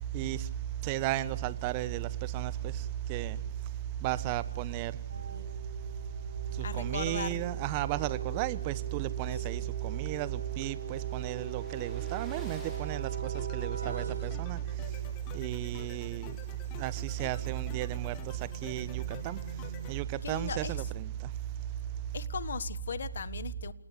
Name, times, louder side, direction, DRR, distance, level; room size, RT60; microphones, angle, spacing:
voice 1, 0.1-0.5 0.8-3.4 4.0-5.0 6.5-14.6 15.3-16.4 16.8-19.4 19.9-21.3, right 14 dB, 25° right, 1.0 m, -33 dB
sound 1, 5.1-15.0 17.2-19.9, right 5 dB, 85° right, 6.7 m, -44 dB
voice 2, 6.6-7.4 9.3-9.7 20.2-20.8 22.1-23.7, left 6 dB, 60° left, 1.5 m, -38 dB
sound 2, 9.1-14.0, left 1 dB, 5° left, 5.0 m, -56 dB
sound 3, 13.1-20.0, left 9 dB, 25° left, 2.3 m, -49 dB
27.5 x 18.5 x 8.3 m
hypercardioid pair, 155°, 0 cm